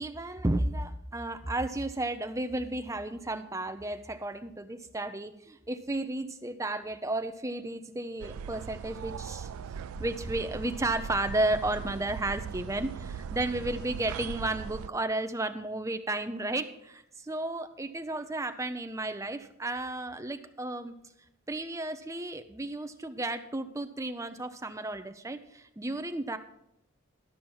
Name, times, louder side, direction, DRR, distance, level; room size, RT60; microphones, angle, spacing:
voice 1, 0.0-9.5 10.0-20.9 21.5-26.4, right 2 dB, 15° right, 8 dB, 0.6 m, -33 dB
sound 1, 8.2-14.9, right 7 dB, 85° right, 0.4 m, -39 dB
12.0 x 5.9 x 7.0 m, 0.79 s
head